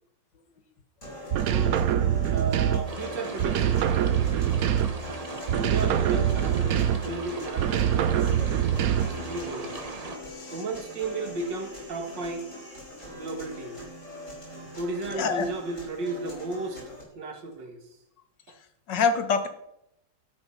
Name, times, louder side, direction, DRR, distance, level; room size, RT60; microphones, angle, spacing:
sound 1, 1.0-17.0, left 1 dB, 40° left, 5.6 m, -42 dB
sound 2, 1.3-3.0 3.4-5.1 5.5-7.2 7.6-9.3, right 10 dB, 65° right, 1.0 m, -24 dB
voice 1, 2.3-3.8 5.5-6.8 7.0-8.7 9.0-9.7 10.5-12.5 13.0-13.8 14.8-16.8 17.1-17.8 18.5-18.6, right 3 dB, 80° right, 5 dB, 2.4 m, -34 dB
sound 3, 2.9-10.2, right 3 dB, 25° right, 1.0 m, -38 dB
voice 2, 10.3-10.6 15.1-15.5 18.9-19.5, left 5 dB, 75° left, 9 dB, 1.9 m, -26 dB
12.5 x 10.5 x 5.6 m, 0.80 s
omnidirectional pair, 1.9 m